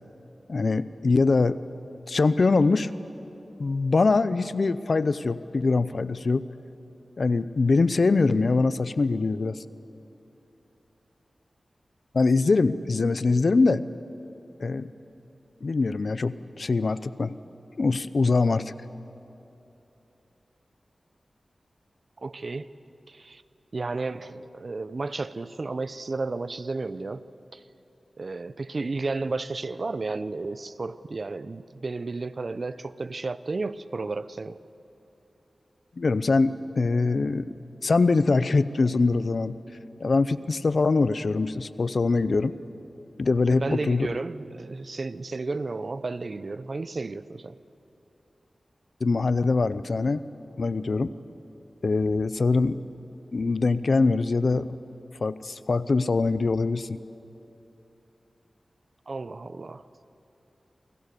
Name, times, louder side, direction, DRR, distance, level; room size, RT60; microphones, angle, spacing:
voice 1, 0.5-1.6 2.1-2.9 3.6-6.4 7.2-9.6 12.1-13.8 14.6-14.9 15.6-17.4 17.8-18.7 36.0-37.5 37.8-39.6 40.0-42.5 43.2-44.1 49.0-50.2 50.6-51.1 51.8-52.8 53.3-54.6 55.2-57.0, left 3 dB, 65° left, 0.8 m, -23 dB
voice 2, 22.2-22.7 23.1-23.4 23.7-27.3 27.5-27.6 28.2-34.6 43.5-47.6 59.1-59.9, right 3 dB, 60° right, 0.8 m, -32 dB
29.0 x 25.0 x 6.9 m
cardioid pair, 50°, 0 cm